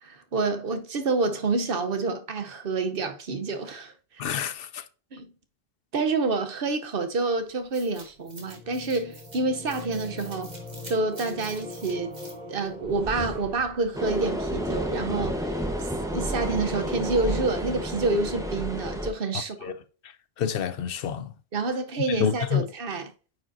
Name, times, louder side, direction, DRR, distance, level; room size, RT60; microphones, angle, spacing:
voice 1, 0.0-3.9 5.1-5.3 5.9-10.5 10.9-12.2 12.5-15.5 16.1-19.7 21.5-23.1, right 3 dB, 65° right, 1.0 m, -28 dB
voice 2, 4.2-4.8 19.6-19.7 20.4-21.3 22.1-22.7, left 8 dB, 65° left, 0.8 m, -28 dB
sound 1, 7.7-14.1, equal, 45° right, 1.7 m, -40 dB
sound 2, 13.9-19.1, equal, 5° right, 0.9 m, -30 dB
8.9 x 5.1 x 2.6 m
omnidirectional pair, 1.0 m